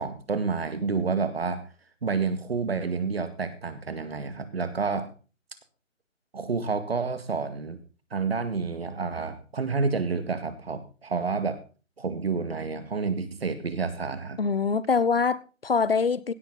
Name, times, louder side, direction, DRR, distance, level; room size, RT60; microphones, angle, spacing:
voice 1, 0.0-1.7 2.0-5.1 6.3-7.8 8.1-11.6 12.0-14.4, right 4 dB, 50° right, 2.0 m, -29 dB
voice 2, 14.4-16.3, left 5 dB, 50° left, 0.8 m, -24 dB
16.5 x 9.8 x 4.0 m
hypercardioid pair, 175°, 39 cm